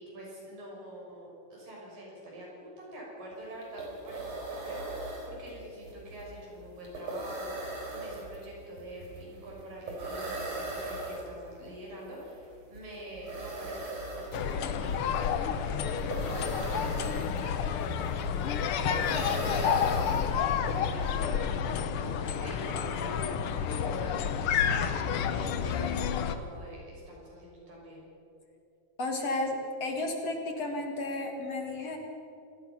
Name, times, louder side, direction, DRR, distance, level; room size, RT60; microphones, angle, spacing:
voice 1, 0.0-21.7 22.0-28.0, right 1 dB, 75° right, -3 dB, 8.6 m, -46 dB
sound 1, 3.3-3.4 3.6-20.7, right 2 dB, 50° right, 5.0 m, -39 dB
sound 2, 14.3-26.4, left 7 dB, 85° left, 1.2 m, -30 dB
sound 3, 17.9-24.1, left 3 dB, 65° left, 2.6 m, -47 dB
voice 2, 29.0-32.0, left 2 dB, 50° left, 3 dB, 2.7 m, -33 dB
27.5 x 18.5 x 6.0 m, 2.7 s
omnidirectional pair, 4.0 m